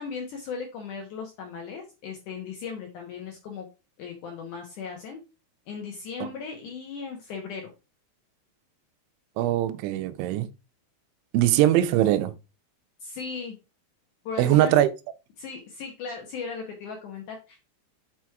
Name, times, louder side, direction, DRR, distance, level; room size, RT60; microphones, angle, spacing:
voice 1, 0.0-3.7 4.0-5.2 5.7-7.7 13.0-13.6 14.3-14.7 15.4-17.7, left 5 dB, 85° left, 1.7 m, -37 dB
voice 2, 9.4-10.5 11.3-12.3 14.4-14.9, right 13 dB, 85° right, 3.1 m, -21 dB
6.2 x 5.9 x 4.6 m
omnidirectional pair, 5.3 m